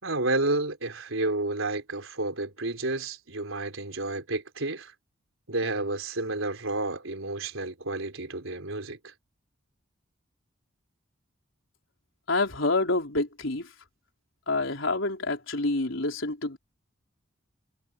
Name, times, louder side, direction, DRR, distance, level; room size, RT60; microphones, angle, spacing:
voice 1, 0.0-4.9 5.5-9.1, right 2 dB, 85° right, 3.8 m, -30 dB
voice 2, 12.3-13.7 14.5-16.6, left 2 dB, 75° left, 4.1 m, -27 dB
head